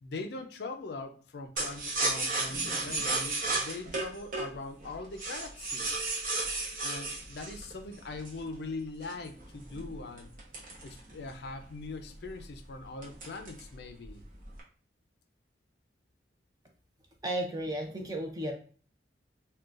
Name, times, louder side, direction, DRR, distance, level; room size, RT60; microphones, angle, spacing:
voice 1, 0.0-5.9 6.8-10.3 10.8-14.2, left 3 dB, 65° left, 6 dB, 0.4 m, -41 dB
sound 1, 1.6-8.5 9.0-11.5 11.8-11.9 12.2-12.6 13.0-13.7 14.0-14.6, right 3 dB, 50° right, 0.8 m, -33 dB
voice 2, 17.2-18.5, right 1 dB, 20° right, 1 dB, 0.5 m, -33 dB
3.8 x 2.2 x 2.4 m, 0.40 s
head